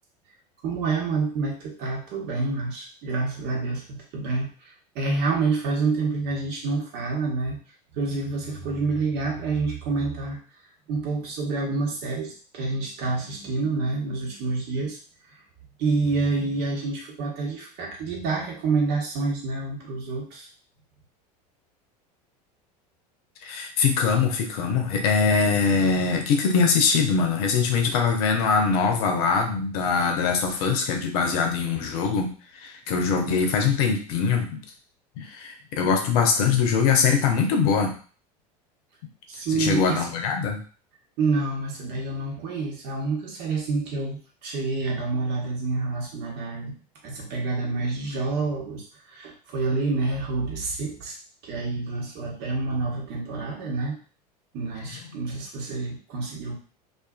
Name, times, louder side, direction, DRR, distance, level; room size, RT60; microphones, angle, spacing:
voice 1, 0.6-4.5 4.9-7.6 7.9-10.4 10.9-15.0 15.8-20.5 39.3-40.1 41.2-46.7 47.0-51.2 51.4-54.0 54.5-56.5, right 3 dB, 55° right, -1 dB, 1.0 m, -28 dB
voice 2, 23.4-34.6 35.2-37.9 39.5-40.6, left 5 dB, 65° left, 3 dB, 0.7 m, -22 dB
2.4 x 2.4 x 2.4 m, 0.40 s
hypercardioid pair, 85°, 20 cm